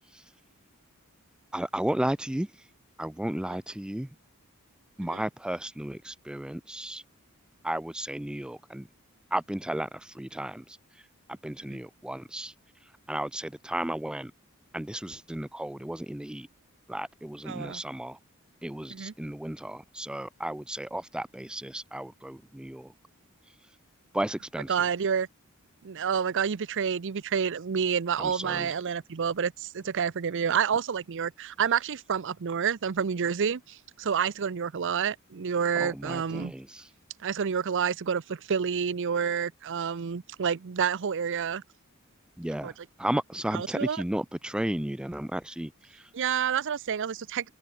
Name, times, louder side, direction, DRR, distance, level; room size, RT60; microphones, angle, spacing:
voice 1, 1.5-2.7 3.0-4.1 5.0-7.0 7.6-8.9 9.3-12.5 12.8-14.3 14.7-16.5 16.9-18.2 18.6-22.9 24.1-24.8 28.2-28.7 35.7-36.9 42.4-46.1, right 1 dB, 5° right, 0.3 m, -34 dB
voice 2, 17.5-17.8 18.9-19.1 24.7-25.3 25.8-36.5 37.2-41.6 42.6-42.7 43.5-44.0 46.1-47.5, right 7 dB, 60° right, 0.6 m, -29 dB
open air
head